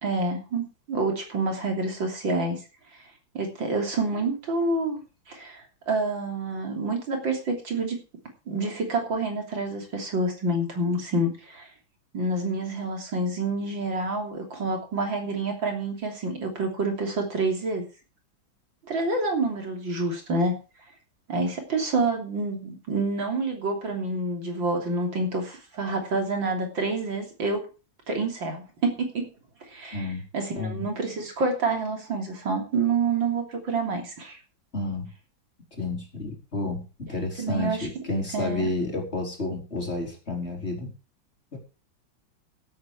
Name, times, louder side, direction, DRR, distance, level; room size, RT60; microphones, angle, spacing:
voice 1, 0.0-2.6 3.3-5.0 5.3-8.0 8.5-11.7 12.1-17.8 18.9-20.5 21.3-27.6 28.1-29.3 29.7-34.4 37.4-37.9 38.3-38.7, right 3 dB, 65° right, 2 dB, 3.9 m, -28 dB
voice 2, 29.9-30.2 30.6-30.8 34.7-35.1 35.7-40.9 41.5-41.6, left 2 dB, 30° left, 1 dB, 4.1 m, -30 dB
16.0 x 8.8 x 4.9 m, 0.33 s
omnidirectional pair, 2.2 m